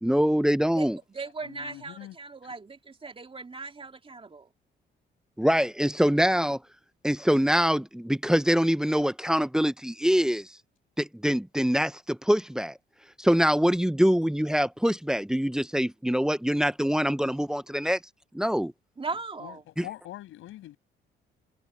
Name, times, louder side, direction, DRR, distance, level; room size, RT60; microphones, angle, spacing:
voice 1, 0.0-1.0 5.4-6.6 7.0-10.5 11.0-12.8 13.2-18.0 18.3-18.7, equal, 5° right, 0.7 m, -24 dB
voice 2, 0.7-4.5 19.0-19.6, right 4 dB, 25° right, 3.3 m, -38 dB
voice 3, 1.4-2.1 2.4-2.5 19.4-19.6 19.8-20.8, left 14 dB, 90° left, 7.0 m, -43 dB
cardioid pair, 90°, 20 cm